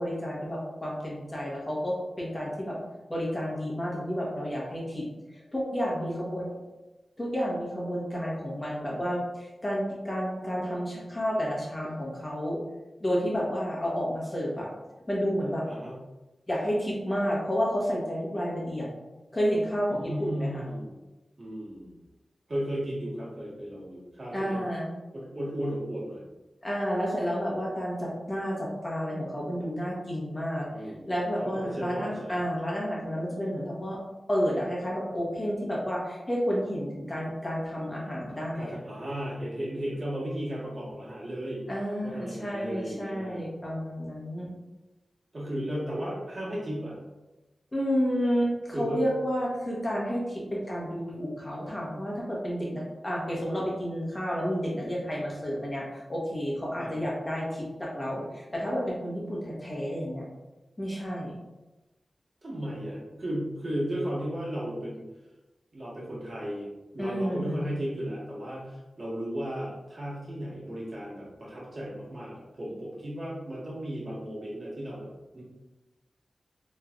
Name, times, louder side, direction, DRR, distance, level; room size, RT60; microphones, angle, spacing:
voice 1, 0.0-2.8 3.1-5.1 5.3-6.5 7.2-12.6 13.0-14.7 15.1-15.6 16.5-18.9 19.3-20.7 24.3-24.9 26.6-30.7 31.1-34.0 34.3-38.8 41.7-44.5 47.7-60.2 60.8-61.4 67.0-67.6, equal, 25° left, -4 dB, 1.1 m, -30 dB
voice 2, 19.9-20.9 21.4-22.0 22.5-24.6 25.1-26.2 30.7-31.1 31.6-32.4 38.5-41.6 42.0-43.4 45.3-47.0 48.7-49.0 56.8-57.0 62.4-65.0 65.7-75.4, equal, 45° right, -7 dB, 1.5 m, -35 dB
3.3 x 3.1 x 2.4 m, 1.1 s
wide cardioid pair, 75°, 0 cm